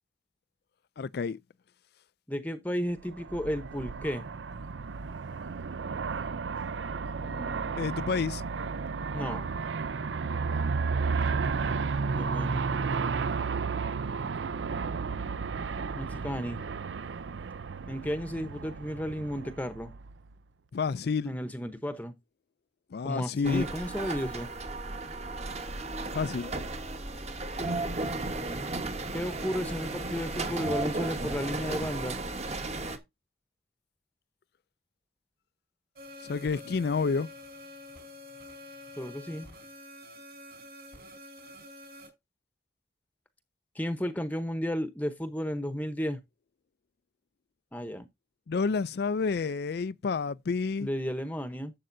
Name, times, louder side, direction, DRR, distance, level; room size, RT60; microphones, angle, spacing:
voice 1, 1.0-1.4 7.8-8.4 20.7-21.3 22.9-23.6 26.1-26.5 36.2-37.3 48.5-50.9, left 5 dB, 60° left, 0.4 m, -29 dB
voice 2, 2.3-4.3 7.2-7.8 9.1-9.5 12.1-12.9 16.0-16.6 17.9-19.9 21.2-22.1 23.0-24.5 29.1-32.2 39.0-39.5 43.7-46.2 47.7-48.1 50.8-51.7, equal, 10° left, 0.9 m, -33 dB
Aircraft, 3.1-20.3, right 5 dB, 90° right, 0.5 m, -33 dB
sound 1, 23.4-33.0, right 2 dB, 40° right, 1.4 m, -34 dB
sound 2, 35.9-42.1, left 1 dB, 55° right, 5.1 m, -47 dB
12.0 x 7.6 x 2.6 m
head